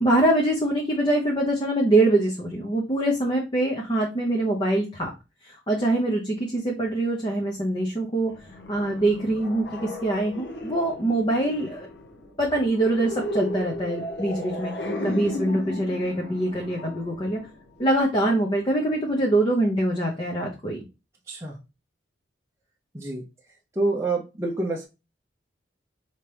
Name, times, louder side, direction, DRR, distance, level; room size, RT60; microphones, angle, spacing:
voice 1, 0.0-5.1 5.4-8.3 8.7-11.9 12.4-14.7 15.0-17.4 17.8-20.8, right 1 dB, 25° left, -1 dB, 0.7 m, -24 dB
sound 1, 8.3-18.0, left 1 dB, 65° left, 0.8 m, -35 dB
voice 2, 21.3-21.6 22.9-23.2 23.8-24.9, right 2 dB, 15° right, -2 dB, 0.6 m, -27 dB
4.9 x 2.9 x 3.3 m, 0.27 s
head